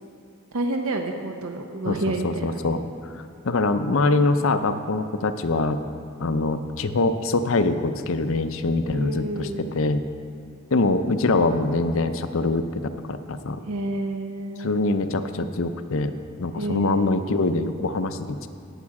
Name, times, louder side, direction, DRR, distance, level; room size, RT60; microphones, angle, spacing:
voice 1, 0.5-2.6 8.8-9.7 13.7-14.8 16.6-17.1, right 2 dB, 75° right, 4 dB, 0.7 m, -29 dB
voice 2, 2.2-5.8 6.2-10.0 10.7-13.6 14.6-16.1 16.4-18.5, left 2 dB, 65° left, 9 dB, 0.6 m, -24 dB
17.0 x 7.4 x 4.8 m, 2.3 s
head